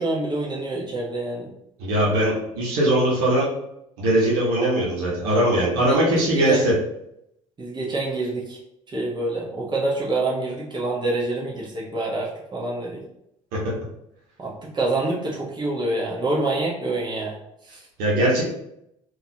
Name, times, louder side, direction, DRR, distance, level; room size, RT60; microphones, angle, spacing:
voice 1, 0.0-1.5 5.9-6.6 7.6-8.6 8.9-13.0 14.4-17.4 17.6-17.8, right 2 dB, 25° right, -4 dB, 1.3 m, -26 dB
voice 2, 1.8-3.5 4.0-6.7 13.5-13.6 18.0-18.4, right 1 dB, 65° right, -5 dB, 1.4 m, -20 dB
3.9 x 2.9 x 2.9 m, 0.79 s
figure-of-eight pair, 55°, 17 cm